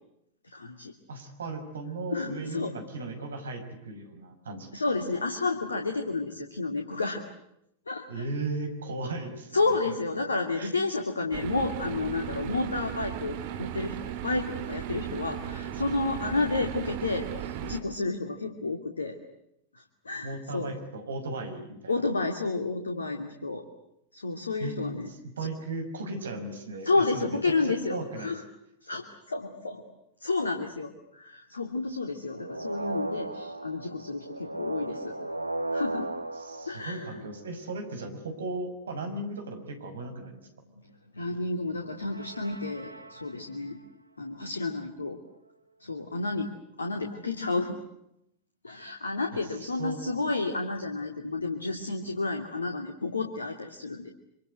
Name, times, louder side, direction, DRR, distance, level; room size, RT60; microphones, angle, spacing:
voice 1, 0.5-0.9 2.1-2.7 4.7-7.2 7.9-8.2 9.5-19.2 19.7-20.7 21.9-23.6 24.1-25.1 26.8-28.4 28.8-29.8 30.2-35.1 35.7-36.1 36.7-37.2 41.1-43.8 44.2-45.2 45.8-47.8 48.6-54.1, left 3 dB, 75° left, 5 dB, 2.6 m, -31 dB
voice 2, 1.1-4.7 8.1-9.5 9.8-9.9 10.6-10.7 20.2-22.1 24.6-24.8 25.4-27.4 27.6-28.3 36.4-40.5 49.3-49.4 49.8-50.0, right 2 dB, 65° right, 7 dB, 5.7 m, -36 dB
sound 1, 11.3-17.8, right 10 dB, 50° right, 2.8 m, -36 dB
sound 2, 32.3-37.7 42.0-43.7, right 2 dB, 85° right, 1.3 m, -36 dB
26.5 x 26.5 x 8.0 m, 0.79 s
figure-of-eight pair, 90°, 0 cm